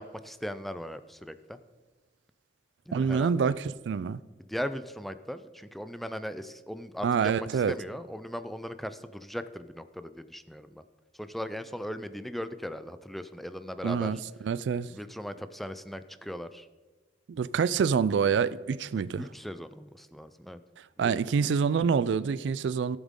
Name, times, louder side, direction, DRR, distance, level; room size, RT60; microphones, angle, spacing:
voice 1, 0.0-1.6 2.9-3.5 4.4-10.8 11.1-14.2 14.9-16.7 19.2-20.6 21.0-21.1, equal, ahead, 0.3 m, -38 dB
voice 2, 2.9-4.2 7.0-7.7 13.8-14.9 17.3-19.3 21.0-23.0, right 6 dB, 75° right, 0.3 m, -26 dB
16.0 x 7.2 x 3.7 m
head